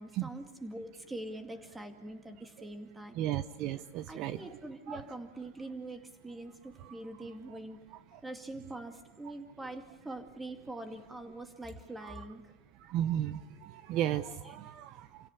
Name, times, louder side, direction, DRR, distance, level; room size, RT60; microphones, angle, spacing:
voice 1, 0.0-3.2 3.7-3.8 4.1-7.8 8.2-12.5 14.4-14.6, right 2 dB, 10° right, 6 dB, 2.3 m, -44 dB
voice 2, 3.2-4.4 4.9-5.0 6.8-6.9 12.8-15.3, right 11 dB, 45° right, 13 dB, 0.8 m, -34 dB
28.5 x 17.0 x 8.4 m, 1.1 s
supercardioid pair, 155°, 0 cm